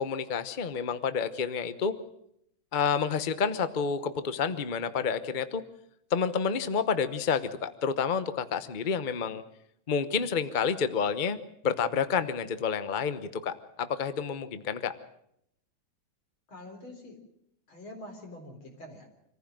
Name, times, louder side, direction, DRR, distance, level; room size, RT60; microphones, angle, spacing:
voice 1, 0.0-1.9 2.7-5.6 6.1-9.4 9.9-14.9, left 6 dB, 35° left, 11 dB, 0.8 m, -29 dB
voice 2, 16.5-17.2 17.7-19.1, left 1 dB, 90° left, 3 dB, 4.9 m, -45 dB
26.5 x 15.0 x 7.6 m, 0.75 s
omnidirectional pair, 2.2 m